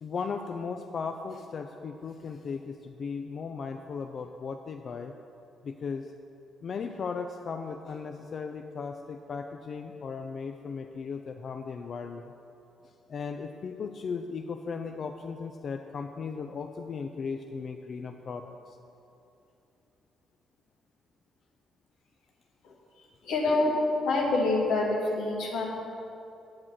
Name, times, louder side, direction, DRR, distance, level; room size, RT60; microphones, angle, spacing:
voice 1, 0.0-5.1 5.6-6.1 6.6-12.3 12.8-18.8, left 5 dB, 55° left, 5 dB, 0.5 m, -37 dB
voice 2, 22.6-25.6, left 2 dB, 90° left, -1 dB, 1.9 m, -27 dB
8.7 x 7.8 x 6.0 m, 2.7 s
cardioid pair, 90°, 0 cm